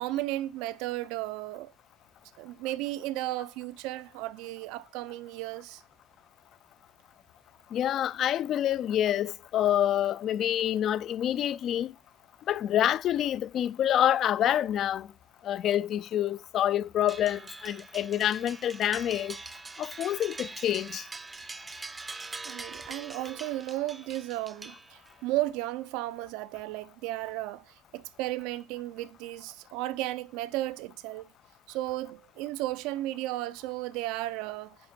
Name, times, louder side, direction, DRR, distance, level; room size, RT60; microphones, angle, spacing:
voice 1, 0.0-1.7 2.4-5.8 22.4-31.3 31.7-34.8, right 16 dB, 75° right, 0.5 m, -34 dB
voice 2, 7.7-11.9 12.5-15.1 15.4-19.4 19.8-21.0, left 11 dB, 40° left, 0.3 m, -27 dB
sound 1, 17.1-25.3, right 3 dB, 10° right, 0.6 m, -43 dB
10.5 x 3.7 x 6.8 m
cardioid pair, 175°, 0 cm